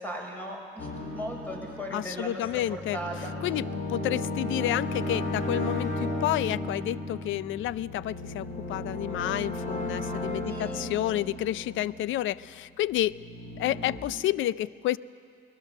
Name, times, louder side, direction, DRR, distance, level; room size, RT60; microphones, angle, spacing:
voice 1, 0.0-3.3 10.5-10.9, equal, 10° left, -1 dB, 5.8 m, -37 dB
sound 1, 0.8-12.5 12.9-14.0, left 1 dB, 40° left, 4.2 m, -35 dB
voice 2, 1.9-3.0 3.4-13.2 13.6-15.0, left 13 dB, 80° left, 19 dB, 0.5 m, -30 dB
22.0 x 20.0 x 6.6 m, 2.3 s
cardioid pair, 90°, 20 cm